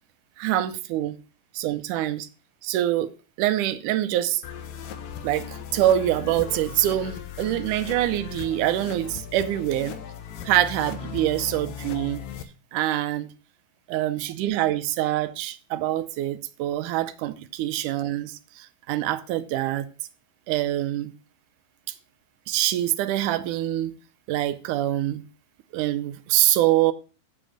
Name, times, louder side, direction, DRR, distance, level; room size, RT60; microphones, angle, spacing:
voice 1, 0.4-1.2 1.5-2.3 2.6-3.1 3.4-4.4 5.2-10.0 10.5-12.2 12.7-13.3 13.9-19.9 20.5-21.1 21.9-22.0 22.5-24.0 24.3-25.2 25.7-26.9, right 13 dB, 75° right, 2.0 m, -25 dB
sound 1, 4.4-12.4, left 9 dB, 75° left, 2.7 m, -37 dB
7.5 x 7.5 x 6.3 m
omnidirectional pair, 4.0 m